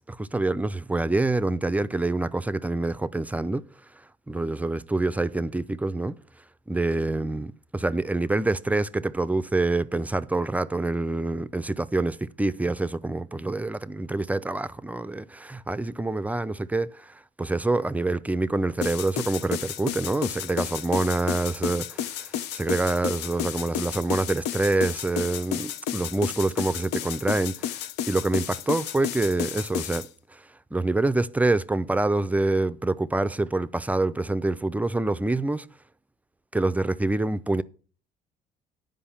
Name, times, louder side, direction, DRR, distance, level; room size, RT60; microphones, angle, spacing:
voice 1, 0.1-3.6 4.3-6.2 6.7-27.8 28.1-30.4 30.7-35.7 36.5-37.6, right 2 dB, 10° right, 0.4 m, -26 dB
sound 1, 18.8-30.1, left 10 dB, 85° left, 0.7 m, -32 dB
10.0 x 5.2 x 7.1 m
cardioid pair, 110°, 17 cm